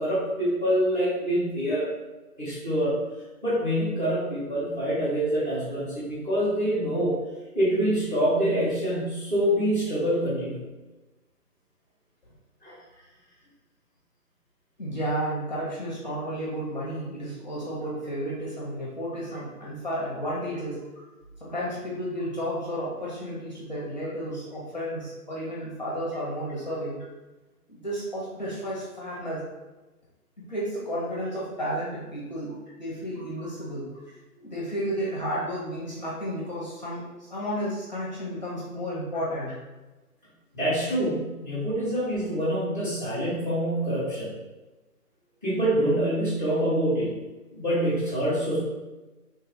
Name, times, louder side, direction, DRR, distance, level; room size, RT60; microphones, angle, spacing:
voice 1, 0.0-1.9 2.4-3.0 3.4-7.2 7.5-10.6 12.6-12.7 40.5-44.3 45.4-47.2 47.5-48.6, equal, 15° right, -9 dB, 0.6 m, -26 dB
voice 2, 14.8-20.8 21.4-27.0 27.7-29.4 30.5-33.9 34.4-39.5, equal, 30° left, -6 dB, 0.6 m, -32 dB
3.1 x 2.2 x 3.6 m, 1.1 s
hypercardioid pair, 155°, 46 cm